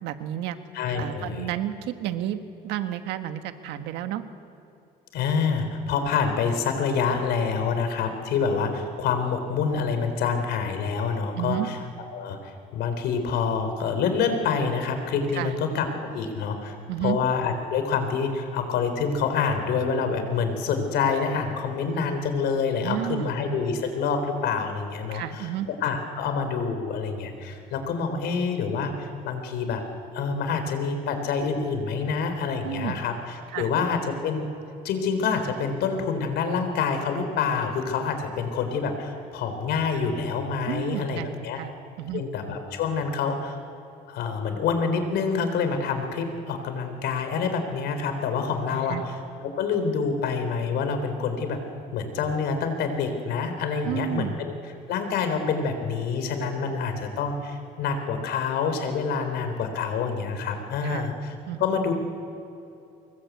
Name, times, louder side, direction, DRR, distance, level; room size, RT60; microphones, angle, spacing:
voice 1, 0.0-0.6 1.0-4.2 11.4-11.7 15.3-15.5 16.9-17.2 22.8-23.3 25.1-25.7 32.6-33.0 33.5-33.7 40.7-41.7 42.0-42.2 48.7-49.0 53.8-54.4 60.8-61.1 61.5-61.6, right 12 dB, 90° right, 8 dB, 1.6 m, -31 dB
voice 2, 0.7-1.5 5.1-11.8 12.1-16.8 17.0-29.8 30.1-34.5 34.8-41.6 42.1-43.6 44.1-51.6 51.9-54.5 54.9-61.3 61.6-61.9, left 5 dB, 80° left, 7 dB, 4.0 m, -27 dB
25.0 x 22.0 x 8.3 m, 2.7 s
cardioid pair, 110°, 17 cm